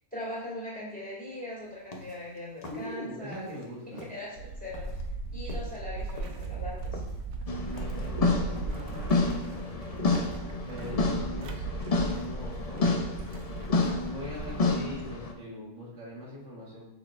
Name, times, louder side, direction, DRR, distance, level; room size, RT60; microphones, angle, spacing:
voice 1, 0.1-3.6 3.9-4.3 4.6-4.9 5.3-7.0, left 1 dB, 5° left, -6 dB, 2.3 m, -40 dB
sound 1, 1.7-3.7 3.9-11.2, left 1 dB, 35° left, 0.7 m, -46 dB
voice 2, 2.7-4.0 7.6-10.0 10.7-13.6 14.1-16.9, equal, 55° right, -5 dB, 1.8 m, -43 dB
sound 2, 4.4-15.2, right 3 dB, 75° right, 1.2 m, -37 dB
sound 3, 7.5-15.3, left 3 dB, 70° left, 0.3 m, -29 dB
6.6 x 6.1 x 2.5 m, 0.89 s
omnidirectional pair, 1.6 m